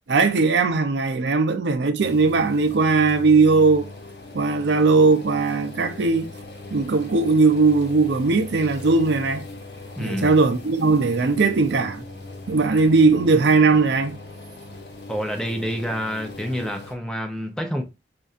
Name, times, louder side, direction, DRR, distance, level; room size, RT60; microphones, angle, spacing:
voice 1, 0.1-3.9 4.3-6.3 6.7-9.5 10.0-12.0 12.5-14.2, right 4 dB, 80° right, 0.5 m, -19 dB
sound 1, 2.0-16.9, left 2 dB, 75° left, 1.1 m, -39 dB
voice 2, 9.9-10.4 15.1-17.8, equal, 5° left, 0.5 m, -28 dB
5.4 x 2.6 x 2.4 m
head